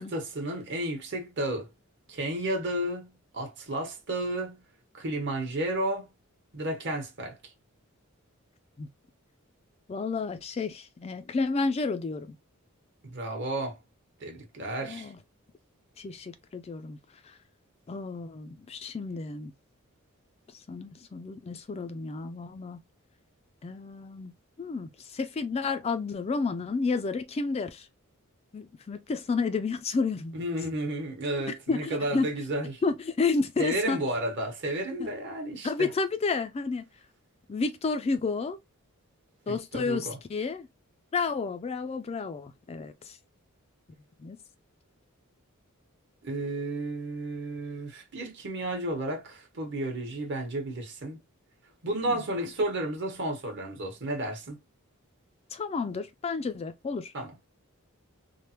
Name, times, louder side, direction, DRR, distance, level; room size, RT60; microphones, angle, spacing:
voice 1, 0.0-1.7 2.1-4.6 4.9-6.1 6.5-7.5 13.0-13.8 14.2-15.1 30.3-32.8 33.6-35.9 39.5-40.2 46.2-51.2 51.8-54.6 57.1-57.3, right 1 dB, 55° right, 1.1 m, -32 dB
voice 2, 9.9-12.4 14.9-15.2 16.0-17.0 17.2-17.4 17.9-19.5 20.5-22.8 23.6-27.9 28.5-30.4 31.7-32.3 32.8-34.0 35.0-35.1 35.6-36.8 37.5-38.6 39.5-40.7 41.1-43.2 44.2-44.4 52.1-52.2 55.5-57.1, left 4 dB, 30° left, 0.3 m, -31 dB
3.3 x 2.0 x 2.8 m
head